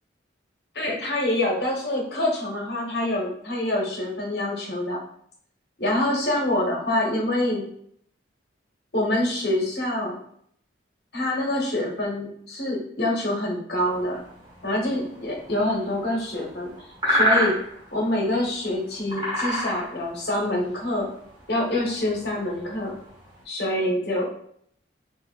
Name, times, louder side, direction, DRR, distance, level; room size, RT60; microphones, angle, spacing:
voice 1, 0.7-5.0 5.8-7.7 8.9-10.2 11.1-14.2 14.6-16.7 17.0-17.5 17.9-21.1 21.5-22.9 23.5-24.3, left 1 dB, 55° left, -2 dB, 1.1 m, -26 dB
sound 1, 13.8-23.4, equal, 25° right, 1.0 m, -30 dB
2.8 x 2.5 x 3.9 m, 0.65 s
head